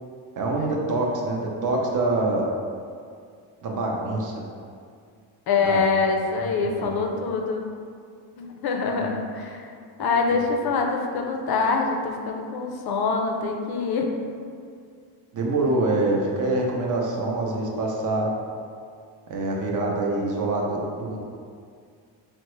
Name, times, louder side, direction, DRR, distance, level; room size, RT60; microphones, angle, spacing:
voice 1, 0.4-2.5 3.6-4.4 5.6-5.8 6.4-7.0 8.9-9.2 10.3-10.4 15.3-18.3 19.3-21.2, right 2 dB, 40° right, -1 dB, 0.6 m, -25 dB
voice 2, 5.5-7.6 8.4-9.6 10.0-14.1, left 4 dB, 50° left, 2 dB, 0.5 m, -25 dB
3.4 x 2.1 x 3.0 m, 2.2 s
cardioid pair, 90°, 49 cm